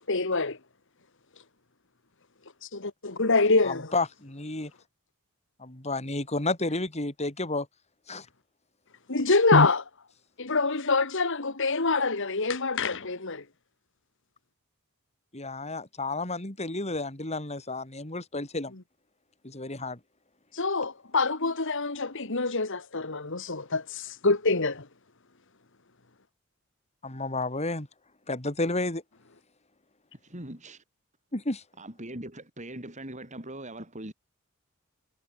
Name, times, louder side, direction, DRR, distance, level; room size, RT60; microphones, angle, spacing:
voice 1, 0.1-0.6 2.6-3.9 9.1-9.8 10.4-13.4 20.5-24.9, left 3 dB, 60° left, 2.1 m, -25 dB
voice 2, 3.6-4.7 5.6-7.7 8.1-8.3 15.3-18.7 19.4-20.0 27.0-27.9 28.3-29.0 31.3-31.6, left 2 dB, 30° left, 3.5 m, -31 dB
voice 3, 30.2-30.8 31.8-34.1, right 1 dB, 35° right, 7.3 m, -41 dB
head